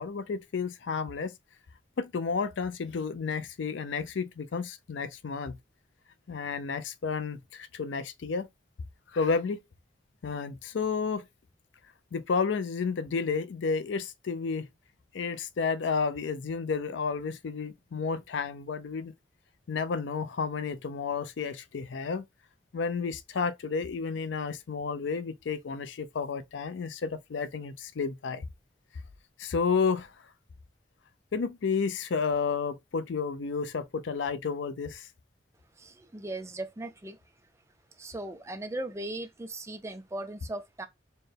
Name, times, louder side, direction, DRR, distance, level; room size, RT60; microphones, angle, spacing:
voice 1, 0.0-1.3 2.0-5.6 6.3-8.5 9.1-9.6 10.2-11.2 12.1-14.7 15.1-19.1 19.7-22.3 22.7-28.5 29.4-30.1 31.3-35.1, left 5 dB, 85° left, 0.4 m, -31 dB
voice 2, 35.8-37.2 38.0-40.9, right 1 dB, 15° right, 0.4 m, -38 dB
4.4 x 2.2 x 3.2 m
head